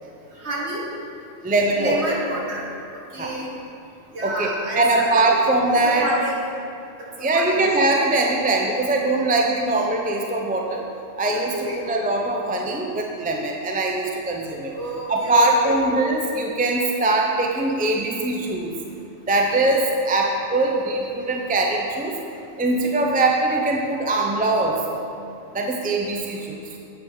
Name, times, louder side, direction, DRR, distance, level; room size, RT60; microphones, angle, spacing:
voice 1, 0.4-0.9 1.8-2.6 3.1-3.5 4.1-5.4 5.8-6.4 7.2-7.6 11.5-11.8 14.7-15.8, right 1 dB, 55° right, -4 dB, 1.8 m, -29 dB
voice 2, 1.4-2.1 3.2-3.4 4.2-6.1 7.2-10.8 11.2-14.7 15.1-18.7 19.3-22.1 22.6-24.8 25.5-26.6, right 2 dB, 10° right, 0 dB, 0.4 m, -22 dB
8.7 x 7.4 x 4.0 m, 2.7 s
omnidirectional pair, 1.3 m